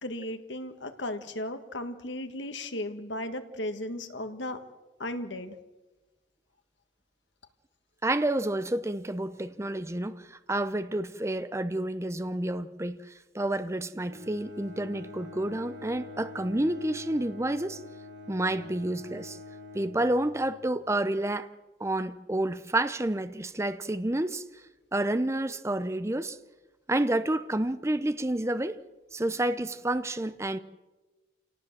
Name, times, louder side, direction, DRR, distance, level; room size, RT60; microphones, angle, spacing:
voice 1, 0.0-4.6 5.0-5.5, left 1 dB, 75° left, 1.8 m, -35 dB
voice 2, 8.0-13.0 13.3-17.8 18.3-19.4 19.7-21.5 21.8-24.4 24.9-26.4 26.9-28.8 29.1-30.6, right 1 dB, 15° right, 0.7 m, -29 dB
Bowed string instrument, 14.0-20.7, left 3 dB, 80° right, 4.1 m, -45 dB
27.5 x 18.5 x 7.5 m
head